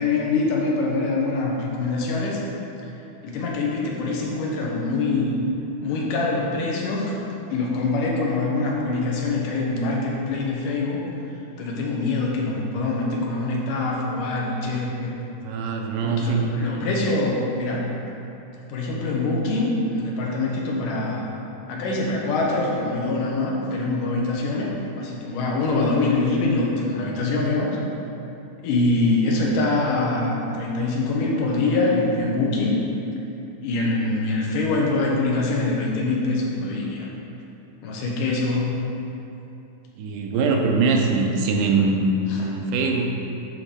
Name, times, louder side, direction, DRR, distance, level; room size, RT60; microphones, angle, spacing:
voice 1, 0.0-2.4 3.2-5.4 5.8-7.2 7.5-11.0 11.6-15.1 16.0-17.9 18.7-21.3 21.7-24.7 25.0-27.8 28.6-32.8 33.6-37.1 37.8-38.7 42.3-42.5, left 2 dB, 85° left, -2 dB, 2.7 m, -24 dB
voice 2, 15.4-16.5 40.0-43.0, right 3 dB, 80° right, 2 dB, 2.3 m, -22 dB
10.5 x 4.3 x 5.3 m, 2.9 s
omnidirectional pair, 3.7 m